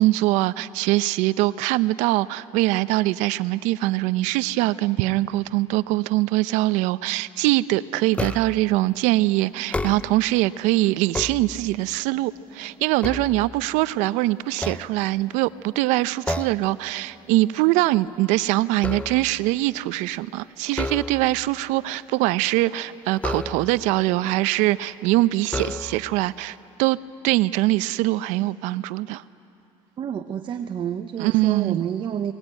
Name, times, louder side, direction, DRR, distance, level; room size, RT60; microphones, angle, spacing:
voice 1, 0.0-27.0 27.2-29.2 31.2-31.8, right 17 dB, 75° right, 16 dB, 0.6 m, -23 dB
sound 1, 8.1-8.7 9.6-10.4 10.9-12.0 12.5-14.0 14.5-15.5 16.2-16.7 17.1-17.4 17.8-19.5 20.7-21.5 23.2-23.9 24.7-24.8 25.4-26.2, left 2 dB, 10° left, 0.7 m, -32 dB
voice 2, 30.0-32.3, right 8 dB, 40° right, 7 dB, 0.9 m, -29 dB
29.0 x 20.0 x 9.0 m, 2.9 s
supercardioid pair, 110°, 13 cm